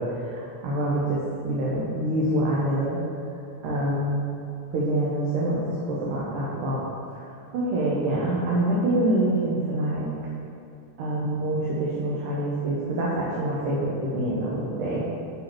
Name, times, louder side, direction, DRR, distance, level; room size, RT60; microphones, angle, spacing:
voice 1, 0.0-3.0 3.6-4.3 4.7-5.6 5.9-6.8 7.1-7.2 7.5-10.1 11.0-15.1, right 1 dB, 80° right, -6 dB, 2.7 m, -26 dB
7.4 x 5.6 x 6.0 m, 2.6 s
omnidirectional pair, 3.6 m